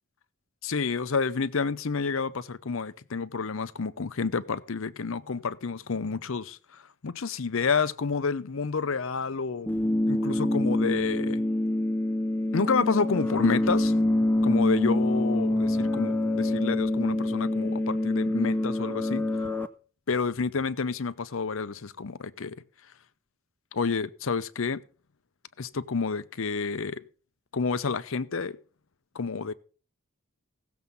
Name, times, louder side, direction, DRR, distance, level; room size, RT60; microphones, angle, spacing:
voice 1, 0.6-9.7 10.1-11.4 12.5-13.9 14.4-19.5 20.1-22.6 23.7-24.8 25.6-27.0 27.5-28.6 29.1-29.5, left 5 dB, 65° left, 0.6 m, -29 dB
sound 1, 9.7-19.7, left 1 dB, 10° left, 0.5 m, -26 dB
16.5 x 7.1 x 5.4 m
head